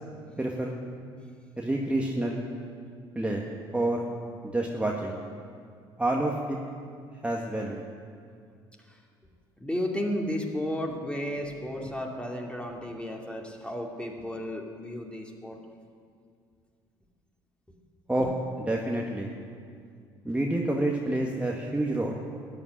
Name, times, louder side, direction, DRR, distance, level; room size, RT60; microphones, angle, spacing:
voice 1, 0.4-0.7 1.6-2.5 3.2-3.4 3.7-4.0 4.4-5.2 6.0-6.6 7.2-7.8 18.1-18.3 18.7-19.3 20.3-22.1, right 1 dB, 10° right, -2 dB, 1.8 m, -28 dB
voice 2, 9.6-15.6, equal, 10° left, 0 dB, 2.7 m, -33 dB
13.5 x 9.0 x 9.9 m, 2.2 s
hypercardioid pair, 60°, 12 cm